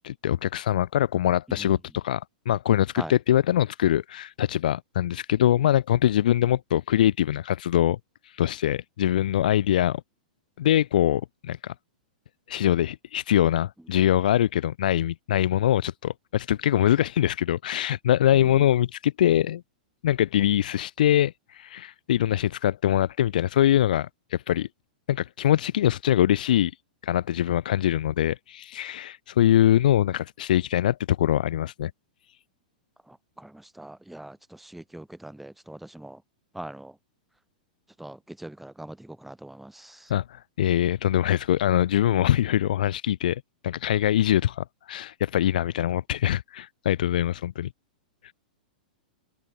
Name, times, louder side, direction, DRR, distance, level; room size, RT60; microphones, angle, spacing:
voice 1, 0.0-8.0 8.3-10.0 10.6-11.7 12.5-19.6 20.0-24.7 25.1-26.7 27.0-31.9 40.1-47.7 48.2-48.3, left 11 dB, 70° left, 0.5 m, -23 dB
voice 2, 18.3-18.7 33.1-36.2 36.5-36.9 38.0-40.1, right 1 dB, 5° right, 0.8 m, -42 dB
hypercardioid pair, 115°, 5 cm